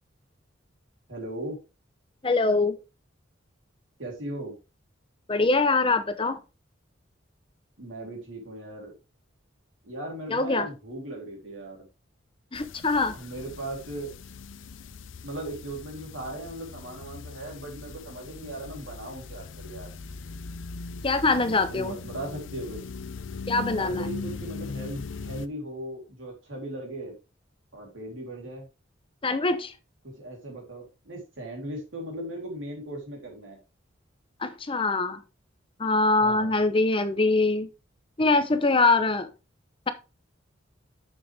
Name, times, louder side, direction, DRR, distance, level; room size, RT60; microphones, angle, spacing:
voice 1, 1.1-1.6 4.0-4.5 7.8-9.0 9.8-11.9 13.1-14.1 15.2-19.9 21.7-22.8 23.8-27.1 27.7-28.7 30.2-33.6 36.2-36.6, right 1 dB, 80° right, 3.4 m, -38 dB
voice 2, 2.2-2.8 5.3-6.4 10.3-10.7 12.5-13.1 21.0-22.0 23.5-24.1 29.2-29.7 34.4-35.2 35.8-37.7 38.2-39.3, left 3 dB, 25° left, 0.8 m, -23 dB
sound 1, 12.5-25.5, left 4 dB, 75° left, 0.6 m, -40 dB
7.2 x 6.7 x 3.4 m
head